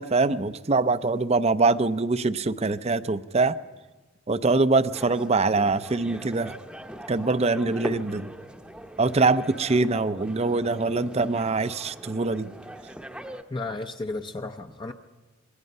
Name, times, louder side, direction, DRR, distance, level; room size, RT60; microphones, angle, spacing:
voice 1, 0.0-3.6 4.3-6.5 7.1-8.3 9.0-12.5, right 3 dB, 30° right, 14 dB, 0.6 m, -23 dB
sound 1, 4.9-13.4, equal, 5° right, 0.9 m, -41 dB
voice 2, 13.5-14.9, left 2 dB, 25° left, 5 dB, 0.7 m, -33 dB
26.5 x 22.0 x 5.5 m, 1.3 s
head